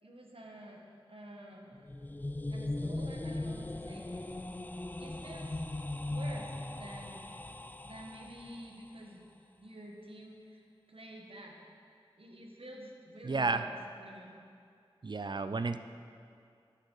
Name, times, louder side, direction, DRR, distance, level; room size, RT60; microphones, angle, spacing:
voice 1, 0.0-0.8 1.1-1.8 2.5-4.4 5.0-5.6 6.0-7.4 7.8-9.2 9.6-10.6 10.9-11.6 12.2-14.4, right 1 dB, 70° right, 0 dB, 1.2 m, -49 dB
sound 1, 1.7-8.7, left 2 dB, 20° left, 0.3 m, -39 dB
voice 2, 13.2-13.6 15.0-15.8, right 3 dB, 50° right, 10 dB, 0.4 m, -31 dB
11.5 x 6.2 x 3.9 m, 2.4 s
wide cardioid pair, 45°, 10 cm